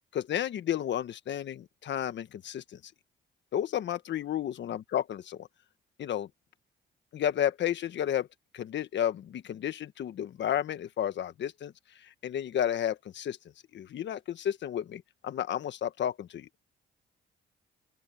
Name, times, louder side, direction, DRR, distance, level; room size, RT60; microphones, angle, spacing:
voice 1, 0.1-2.8 3.5-5.5 6.0-6.3 7.1-8.3 8.5-11.7 12.2-13.4 13.7-16.5, left 10 dB, 65° left, 1.4 m, -32 dB
open air
cardioid pair, 90°, 20 cm